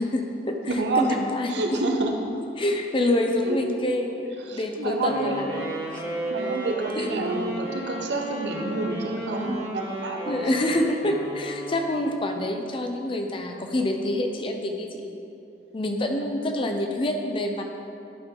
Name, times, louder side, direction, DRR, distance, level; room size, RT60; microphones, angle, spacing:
voice 1, 0.0-1.5 2.6-6.0 7.0-7.1 10.3-15.2 15.7-17.7, left 1 dB, 30° left, 3 dB, 0.5 m, -27 dB
voice 2, 0.7-1.2 1.5-2.1 3.4-3.6 4.4-5.5 6.3-10.2, right 2 dB, 80° right, 2 dB, 0.9 m, -28 dB
Wind instrument woodwind instrument, 5.0-12.2, right 1 dB, 55° right, 1.9 m, -34 dB
11.0 x 5.6 x 3.7 m, 2.6 s
head